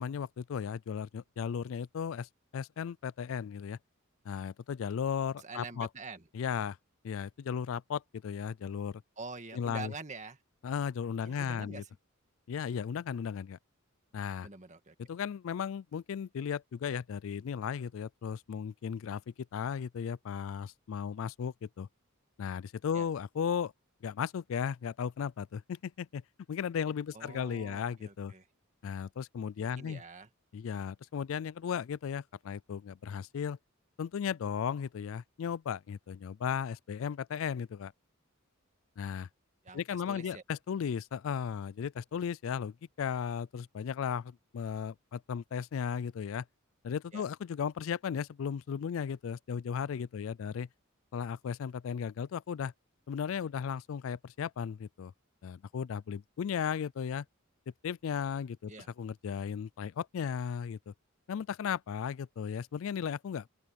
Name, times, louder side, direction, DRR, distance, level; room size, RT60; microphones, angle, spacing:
voice 1, 0.0-3.8 4.3-5.9 6.3-6.8 7.0-9.0 9.5-9.9 10.6-11.8 12.5-13.6 14.1-14.5 15.1-19.2 19.5-21.9 22.4-23.7 24.0-26.2 26.5-28.3 28.8-30.0 30.5-33.6 34.0-37.9 39.0-39.3 39.7-46.4 46.8-50.7 51.1-52.7 53.1-55.1 55.4-57.3 57.8-58.7 59.0-60.9 61.3-63.5, left 7 dB, 65° left, 0.3 m, -35 dB
voice 2, 5.4-6.3 9.2-10.4 11.2-11.9 14.4-14.9 22.9-23.1 27.1-28.5 29.6-30.3 39.6-40.4 47.1-47.2 58.7-58.9, right 3 dB, 35° right, 1.9 m, -46 dB
head